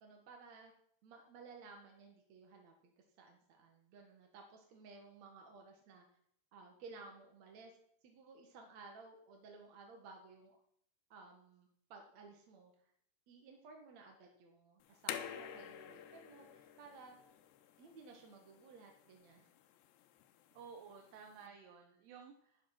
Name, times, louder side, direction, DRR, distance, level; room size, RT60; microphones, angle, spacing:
voice 1, 0.0-0.7 1.0-6.1 6.5-7.7 8.0-10.6 11.1-12.7 13.3-17.2 17.8-19.4 21.5-21.6, right 4 dB, 55° right, 2 dB, 2.3 m, -57 dB
sound 1, 14.8-21.5, left 10 dB, 85° left, 3.1 m, -50 dB
voice 2, 20.6-22.6, right 6 dB, 80° right, 3 dB, 3.4 m, -54 dB
11.5 x 10.5 x 5.9 m, 0.68 s
omnidirectional pair, 4.8 m